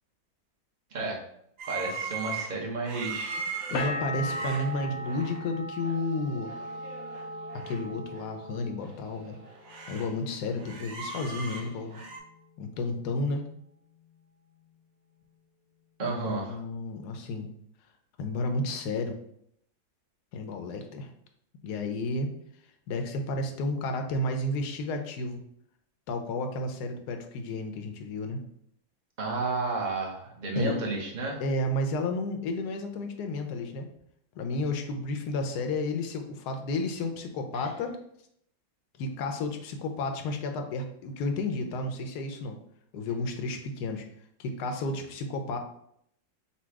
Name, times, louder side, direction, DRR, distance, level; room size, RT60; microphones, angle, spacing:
voice 1, 0.9-1.2 1.7-3.5 16.0-16.6 29.2-31.4 37.5-37.7, right 3 dB, 40° right, -1 dB, 0.6 m, -32 dB
sound 1, 1.6-5.4 5.8-6.1 6.3-7.8 8.1-8.2 8.8-10.1 10.4-12.2, right 5 dB, 75° right, 1.6 m, -39 dB
sound 2, 3.7-9.4 9.7-10.4, left 1 dB, 90° left, 0.7 m, -38 dB
voice 2, 3.7-6.5 7.5-9.4 9.9-12.0 12.6-13.4 16.0-17.5 18.2-19.2 20.3-21.1 21.6-22.3 22.9-25.4 26.1-28.4 30.5-30.7 31.4-33.9 34.4-38.0 39.0-42.6 42.9-44.1 44.4-45.6, left 2 dB, 70° left, 5 dB, 1.0 m, -32 dB
4.2 x 2.3 x 4.5 m, 0.71 s
omnidirectional pair, 2.1 m